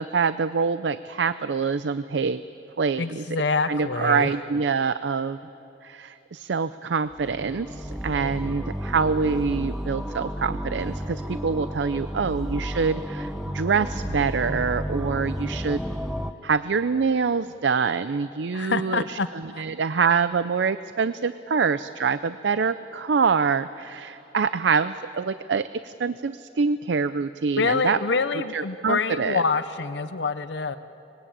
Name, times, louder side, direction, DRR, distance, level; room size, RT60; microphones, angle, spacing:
voice 1, 0.0-2.4 2.8-3.4 3.7-5.4 5.8-15.8 16.4-28.0 28.5-29.4, right 5 dB, 85° right, 13 dB, 0.5 m, -25 dB
voice 2, 3.0-4.3 18.5-19.6 27.6-30.8, left 4 dB, 85° left, 12 dB, 0.7 m, -26 dB
sound 1, 7.1-16.3, equal, ahead, 0.7 m, -32 dB
24.5 x 21.0 x 8.7 m, 2.9 s
head